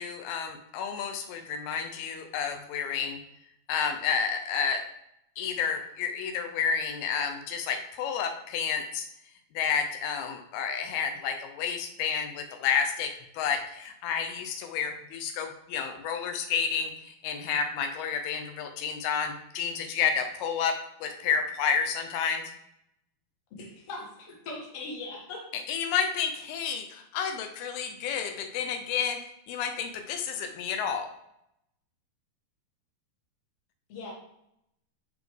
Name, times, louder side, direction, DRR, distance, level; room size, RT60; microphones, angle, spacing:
voice 1, 0.0-3.2 3.7-4.8 5.4-9.1 9.5-22.4 25.7-29.2 29.5-31.1, left 7 dB, 90° left, 5 dB, 2.7 m, -30 dB
voice 2, 23.5-25.4 33.9-34.1, left 2 dB, 50° left, -2 dB, 2.4 m, -40 dB
11.5 x 4.2 x 3.3 m, 0.79 s
omnidirectional pair, 4.3 m